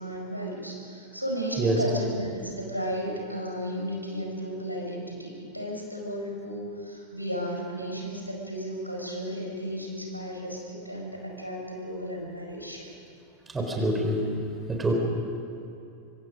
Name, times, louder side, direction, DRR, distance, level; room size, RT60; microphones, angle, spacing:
voice 1, 0.0-12.9, equal, 90° right, -1 dB, 4.9 m, -34 dB
voice 2, 13.5-14.2 14.7-14.9, right 1 dB, 15° right, 2 dB, 3.9 m, -25 dB
25.5 x 25.0 x 5.2 m, 2.7 s
figure-of-eight pair, 90°, 0 cm